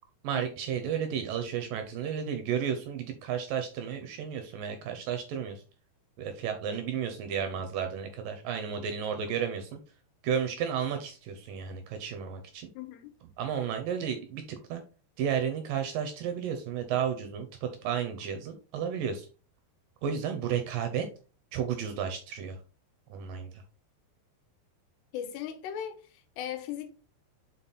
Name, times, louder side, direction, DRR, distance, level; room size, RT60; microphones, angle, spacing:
voice 1, 0.2-5.6 6.2-9.8 10.2-12.7 13.4-14.8 15.2-19.3 20.0-21.1 21.5-22.6 23.1-23.6, right 8 dB, 75° right, 2.1 m, -32 dB
voice 2, 12.7-13.1 25.1-26.9, left 10 dB, 85° left, 3.1 m, -38 dB
5.9 x 5.4 x 4.1 m
omnidirectional pair, 4.7 m